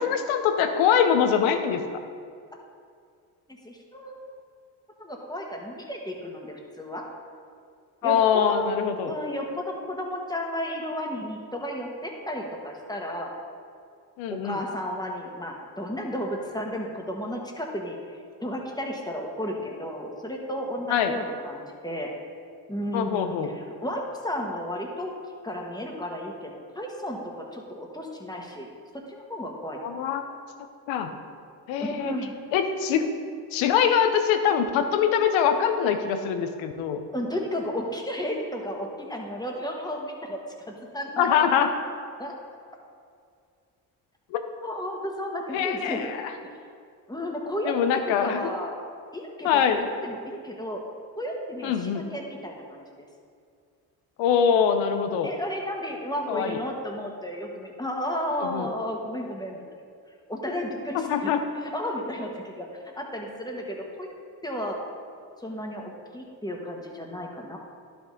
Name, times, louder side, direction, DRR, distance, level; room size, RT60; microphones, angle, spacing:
voice 1, 0.0-1.8 8.0-9.1 14.2-14.6 20.9-21.1 22.9-23.5 29.8-30.2 30.9-31.1 31.7-32.1 32.5-33.1 33.5-37.0 41.2-41.7 44.3-44.4 45.5-46.3 47.7-48.5 49.4-49.9 51.6-52.0 54.2-55.3 56.3-56.6 58.4-58.7 60.9-61.4, left 8 dB, 85° left, 7 dB, 0.7 m, -23 dB
voice 2, 3.5-4.2 5.0-7.1 8.0-8.8 9.0-13.3 14.3-22.1 22.7-25.1 25.4-27.2 27.5-28.7 29.1-30.1 31.8-32.3 37.1-40.4 40.7-41.3 42.2-42.3 44.6-46.0 47.1-47.8 48.1-48.8 49.1-50.8 51.2-52.8 55.2-59.6 60.3-61.3 61.7-62.7 63.0-64.1 64.4-64.8 65.4-67.6, equal, 10° left, 0 dB, 1.6 m, -33 dB
11.0 x 5.5 x 3.9 m, 2.2 s
supercardioid pair, 55°, 45 cm